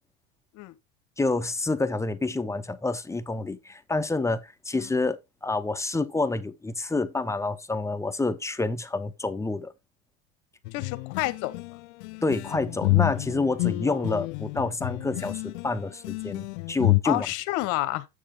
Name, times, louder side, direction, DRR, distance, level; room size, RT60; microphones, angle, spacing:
voice 1, 1.2-9.7 12.2-17.3, left 3 dB, 10° left, 0.7 m, -28 dB
sound 1, 10.6-17.0, left 25 dB, 80° left, 0.6 m, -28 dB
voice 2, 10.7-11.8 12.1-12.5 13.9-14.0 17.0-18.1, left 17 dB, 60° left, 1.0 m, -30 dB
7.7 x 6.5 x 3.5 m
supercardioid pair, 100°, 34 cm